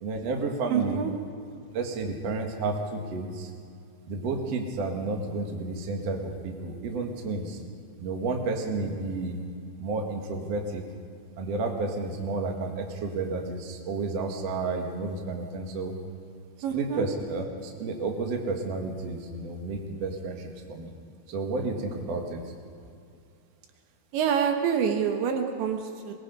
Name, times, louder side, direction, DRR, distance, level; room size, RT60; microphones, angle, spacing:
voice 1, 0.0-1.0 1.7-3.5 4.1-7.6 8.0-9.4 9.8-10.8 11.4-15.9 16.7-20.9 21.3-22.4, right 3 dB, 50° right, 2 dB, 2.2 m, -31 dB
voice 2, 0.7-1.1 16.6-17.1 24.1-26.1, right 7 dB, 80° right, 4 dB, 3.4 m, -27 dB
23.0 x 21.0 x 5.4 m, 2.4 s
omnidirectional pair, 5.2 m